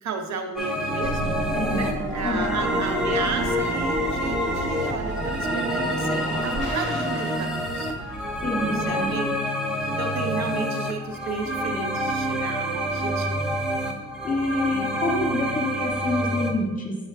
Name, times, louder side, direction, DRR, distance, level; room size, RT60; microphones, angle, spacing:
voice 1, 0.0-1.3 1.7-9.3 9.9-13.5, right 4 dB, 65° right, 6 dB, 0.7 m, -33 dB
sound 1, 0.6-16.5, equal, ahead, 0.9 m, -27 dB
sound 2, 1.0-9.1, right 1 dB, 40° right, 1.2 m, -32 dB
voice 2, 1.5-1.9 2.2-2.6 8.4-9.1 14.2-17.0, left 2 dB, 25° left, -1 dB, 1.6 m, -27 dB
7.0 x 6.1 x 2.2 m, 1.1 s
cardioid pair, 90°, 30 cm